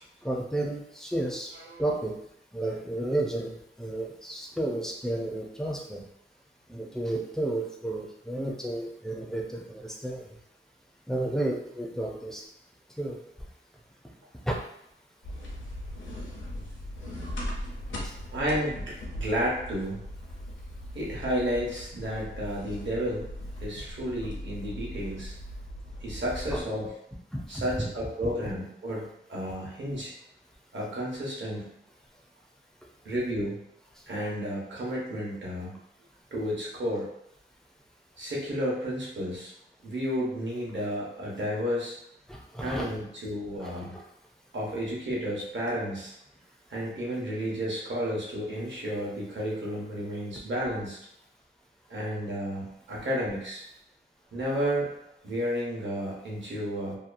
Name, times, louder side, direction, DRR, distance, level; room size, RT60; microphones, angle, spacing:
voice 1, 0.2-2.2 2.5-6.0 6.7-10.3 11.1-12.4 13.0-13.2 14.4-14.6 18.0-18.1 26.5-26.6 27.3-27.9 42.3-42.9 43.6-44.0, right 1 dB, ahead, -1 dB, 0.4 m, -32 dB
sound 1, 15.2-26.6, equal, 65° left, 0.6 m, -39 dB
voice 2, 18.3-20.1 20.9-23.3 23.6-25.3 26.0-26.9 27.5-30.1 30.7-31.7 33.0-33.6 34.1-35.8 36.3-37.1 38.2-39.5 39.8-42.0 42.6-44.0 44.5-46.1 46.7-51.0 51.9-53.6 54.3-54.9 55.2-57.0, equal, 65° right, -4 dB, 1.0 m, -32 dB
2.7 x 2.2 x 2.5 m, 0.75 s
wide cardioid pair, 135°, 21 cm